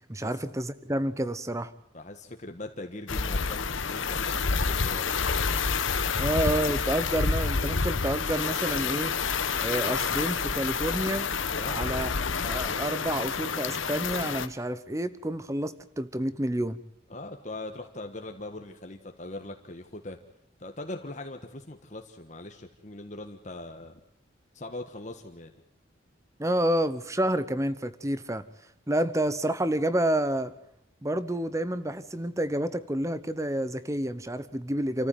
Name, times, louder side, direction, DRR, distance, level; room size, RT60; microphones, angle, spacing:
voice 1, 0.1-1.7 6.2-9.2 9.6-11.3 11.7-12.1 12.4-16.8 26.4-28.4 28.9-30.5 31.0-35.1, right 1 dB, 15° right, 14 dB, 1.0 m, -29 dB
voice 2, 1.9-5.2 11.6-12.0 17.1-20.2 20.6-24.0 24.5-25.5, left 2 dB, 40° left, 5 dB, 1.4 m, -41 dB
sound 1, 3.1-14.5, left 5 dB, 80° left, 1.2 m, -28 dB
28.5 x 14.5 x 9.2 m, 0.79 s
head